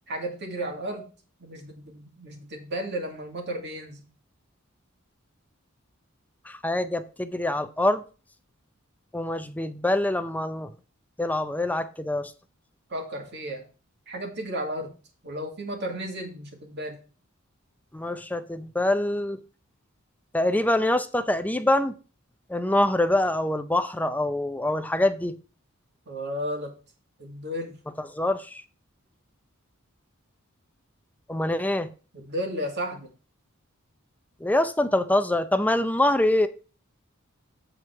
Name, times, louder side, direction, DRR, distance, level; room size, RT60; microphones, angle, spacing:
voice 1, 0.1-1.1 1.4-4.1 12.9-13.6 14.1-14.9 15.2-17.0 26.1-26.7 27.2-27.8 32.1-33.1, equal, 55° right, 2.4 m, -33 dB
voice 2, 6.5-8.0 9.1-10.7 11.2-12.3 17.9-19.4 20.3-21.9 22.5-25.4 28.0-28.6 31.3-31.9 34.4-36.5, left 1 dB, 10° left, 0.5 m, -25 dB
8.0 x 4.6 x 5.9 m
head